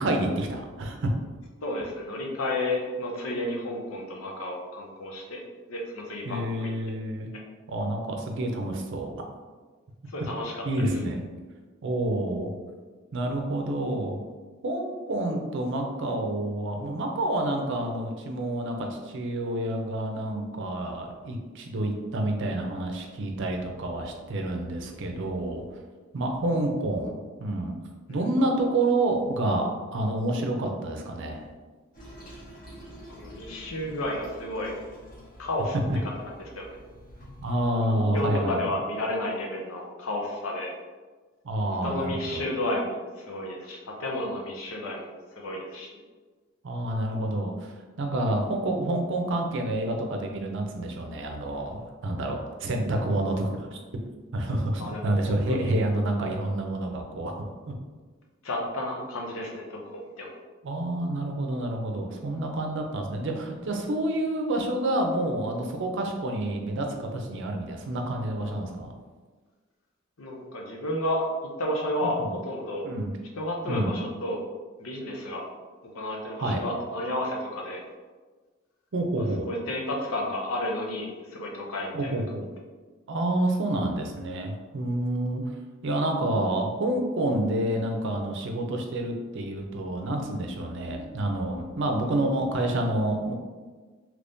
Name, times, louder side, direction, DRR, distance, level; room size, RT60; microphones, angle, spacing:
voice 1, 0.0-1.1 6.2-7.3 7.7-9.3 10.6-11.2 11.8-12.5 13.1-14.2 14.6-25.6 26.1-27.8 28.1-31.5 37.4-38.7 41.4-42.4 46.6-47.7 48.0-54.0 54.3-57.3 57.7-57.8 60.6-68.9 72.0-72.3 72.8-73.1 73.7-73.9 76.4-76.6 78.9-79.5 81.9-82.5 83.1-85.4 85.8-93.3, right 1 dB, 65° right, 3 dB, 0.5 m, -28 dB
voice 2, 1.6-5.4 5.7-6.7 10.1-10.6 28.1-28.2 33.1-34.7 35.4-35.8 36.5-36.8 37.9-40.7 41.8-45.9 54.8-55.7 58.4-60.3 70.2-71.3 71.6-72.8 73.4-74.4 74.8-75.4 75.9-77.8 79.2-82.1, left 1 dB, 90° left, 0 dB, 0.7 m, -32 dB
Toilet flush, 31.9-37.6, equal, 45° left, 1.0 m, -47 dB
3.5 x 3.0 x 2.6 m, 1.4 s
head